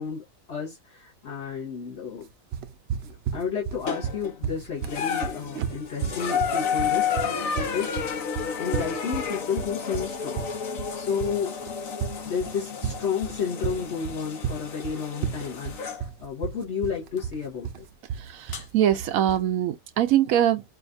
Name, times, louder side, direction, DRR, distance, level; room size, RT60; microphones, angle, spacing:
voice 1, 0.0-2.3 3.0-8.2 8.6-11.6 12.2-17.8, left 6 dB, 55° left, 1.6 m, -32 dB
sound 1, 2.5-19.5, right 8 dB, 60° right, 0.7 m, -33 dB
sound 2, 3.9-4.3 4.8-16.0 17.2-17.3 18.5-18.6, left 7 dB, 85° left, 1.4 m, -31 dB
voice 2, 18.2-20.6, right 11 dB, 85° right, 1.0 m, -23 dB
5.6 x 2.5 x 2.6 m
omnidirectional pair, 1.4 m